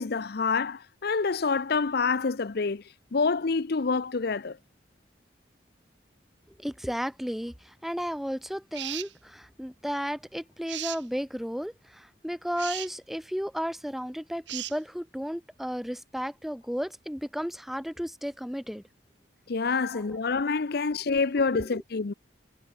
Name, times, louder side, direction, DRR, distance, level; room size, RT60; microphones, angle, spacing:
voice 1, 0.0-2.8 3.1-4.6 19.5-22.1, left 4 dB, 60° left, 0.7 m, -27 dB
voice 2, 6.6-18.8 19.9-20.0, equal, ahead, 1.9 m, -33 dB
sound 1, 8.7-9.1 10.7-11.0 12.6-12.9 14.5-14.8, right 13 dB, 90° right, 1.9 m, -36 dB
head